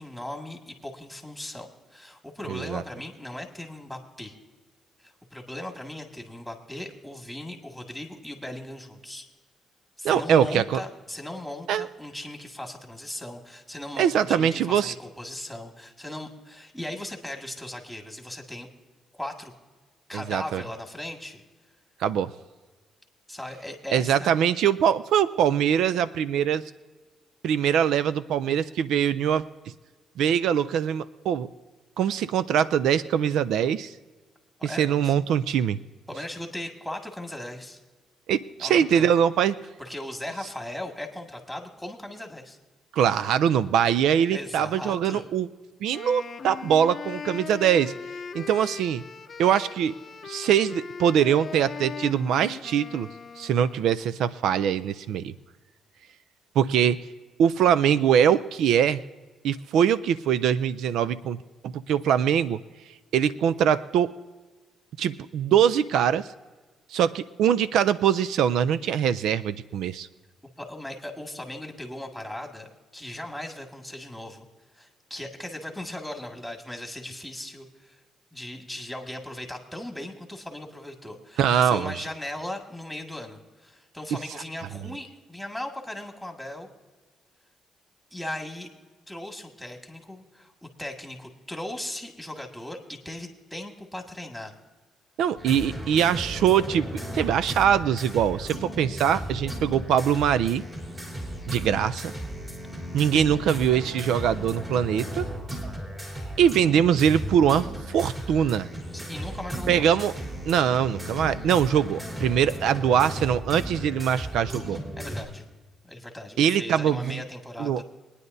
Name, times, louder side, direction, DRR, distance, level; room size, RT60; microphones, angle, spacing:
voice 1, 0.0-4.4 5.0-9.3 10.0-18.7 19.1-19.5 20.1-21.4 23.3-24.3 34.6-35.1 36.1-37.8 38.6-39.1 39.8-42.6 44.3-45.3 70.6-74.5 74.8-78.0 78.3-86.7 88.1-88.7 89.1-94.5 108.9-109.9 114.7-115.4 115.8-117.8, left 1 dB, ahead, 2 dB, 1.9 m, -38 dB
voice 2, 2.5-2.8 10.0-10.8 11.7-11.9 14.0-14.9 20.1-20.6 22.0-22.3 23.9-26.6 27.4-29.4 30.2-31.5 32.0-33.9 34.6-35.8 38.3-39.6 42.9-45.5 45.8-47.9 48.3-49.0 49.4-49.9 50.2-53.1 53.4-55.3 56.6-57.0 57.4-59.0 59.4-61.4 61.6-62.6 63.1-64.1 65.0-66.3 66.9-70.1 81.4-81.9 95.2-96.9 97.1-100.6 101.5-102.1 102.9-105.2 106.4-108.7 109.7-110.1 110.4-114.8 116.4-117.2 117.6-117.8, right 9 dB, 80° right, 15 dB, 0.4 m, -23 dB
Wind instrument woodwind instrument, 45.9-54.0, left 6 dB, 45° left, 0.5 m, -39 dB
sound 1, 95.4-115.2, equal, 25° right, 3.4 m, -35 dB
23.0 x 9.8 x 2.6 m, 1.3 s
cardioid pair, 90°, 0 cm